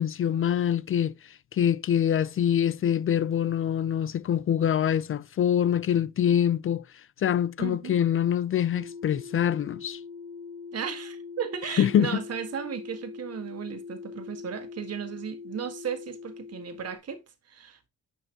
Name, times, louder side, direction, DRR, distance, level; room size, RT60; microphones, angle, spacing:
voice 1, 0.0-6.8 7.2-10.0 11.8-12.1, left 9 dB, 45° left, 0.5 m, -25 dB
voice 2, 7.6-8.0 10.7-17.9, right 8 dB, 55° right, 1.7 m, -35 dB
sound 1, 8.7-17.0, left 5 dB, 20° right, 1.8 m, -42 dB
9.8 x 5.4 x 2.9 m
cardioid pair, 90°, 30 cm